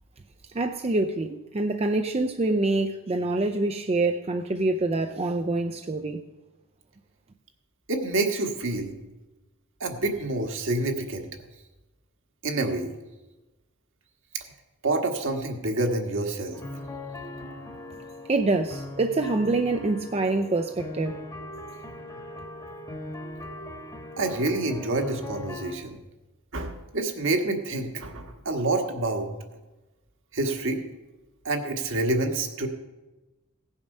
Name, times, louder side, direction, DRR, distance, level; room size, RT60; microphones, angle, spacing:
voice 1, 0.5-6.2 18.3-21.2, right 2 dB, 30° right, 0.5 m, -26 dB
voice 2, 7.9-8.9 9.8-11.3 12.4-12.9 14.3-14.4 14.8-16.6 24.2-26.0 26.5-29.3 30.3-30.8 31.4-32.7, right 2 dB, 60° right, 1.5 m, -27 dB
sound 1, 16.5-25.8, left 1 dB, 15° left, 1.2 m, -39 dB
17.0 x 7.2 x 5.4 m
head